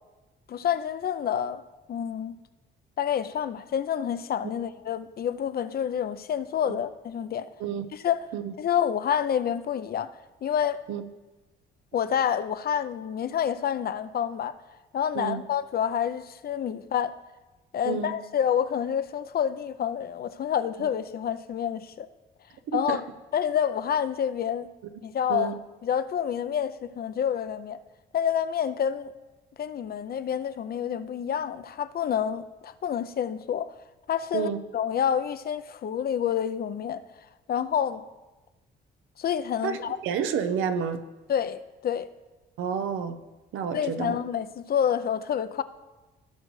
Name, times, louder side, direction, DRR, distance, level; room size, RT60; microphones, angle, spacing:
voice 1, 0.5-2.4 3.0-7.5 7.9-8.3 8.6-10.1 10.4-10.8 11.9-14.6 14.9-17.1 17.7-22.1 22.7-23.0 23.3-24.7 25.0-25.5 25.8-27.8 28.1-29.1 29.6-33.8 34.1-34.5 34.7-37.0 37.5-38.0 39.2-40.0 41.3-42.1 43.7-45.6, left 9 dB, 50° left, 0.5 m, -28 dB
voice 2, 40.0-41.0 42.6-43.2 43.5-44.1, right 7 dB, 90° right, 0.7 m, -29 dB
16.5 x 6.4 x 3.2 m
cardioid pair, 90°, 20 cm